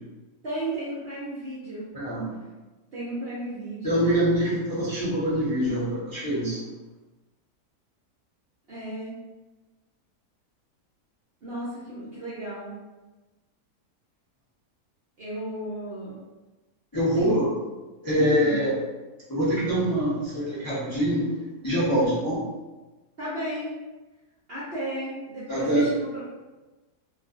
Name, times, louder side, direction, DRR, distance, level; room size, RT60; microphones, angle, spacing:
voice 1, 0.4-1.9 2.9-4.0 8.7-9.1 11.4-12.8 15.2-16.2 17.1-17.3 18.2-18.6 21.9-22.2 23.2-23.8 24.5-26.3, right 1 dB, 55° right, -9 dB, 0.7 m, -33 dB
voice 2, 1.9-2.3 3.8-6.6 16.9-17.5 18.0-18.7 19.3-21.3 21.6-22.4 25.5-25.9, equal, 25° left, -11 dB, 0.4 m, -24 dB
2.4 x 2.4 x 2.4 m, 1.2 s
omnidirectional pair, 1.6 m